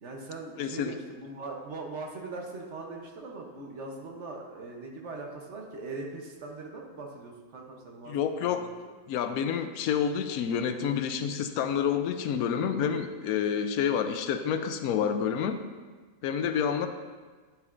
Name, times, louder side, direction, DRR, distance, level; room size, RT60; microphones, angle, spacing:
voice 1, 0.0-8.1 8.4-8.7 16.6-16.9, right 3 dB, 55° right, 0 dB, 1.2 m, -41 dB
voice 2, 0.6-0.9 8.1-8.7 9.1-15.6 16.2-16.9, left 8 dB, 80° left, 8 dB, 1.0 m, -28 dB
9.7 x 6.9 x 2.5 m, 1.4 s
omnidirectional pair, 1.5 m